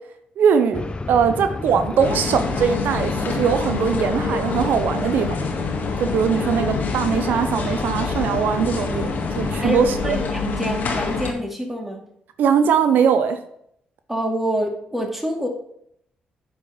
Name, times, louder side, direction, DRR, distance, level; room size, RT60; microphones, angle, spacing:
voice 1, 0.4-5.3 6.0-9.1 9.4-10.2 12.4-13.4, right 7 dB, 75° right, 9 dB, 0.6 m, -20 dB
sound 1, 0.7-9.7, left 3 dB, 30° left, 0.6 m, -31 dB
sound 2, 2.0-11.3, left 4 dB, 65° left, 1.8 m, -26 dB
voice 2, 9.6-12.0 14.1-15.5, equal, 5° right, 2 dB, 2.4 m, -26 dB
9.3 x 4.9 x 5.5 m, 0.71 s
supercardioid pair, 65°, 3 cm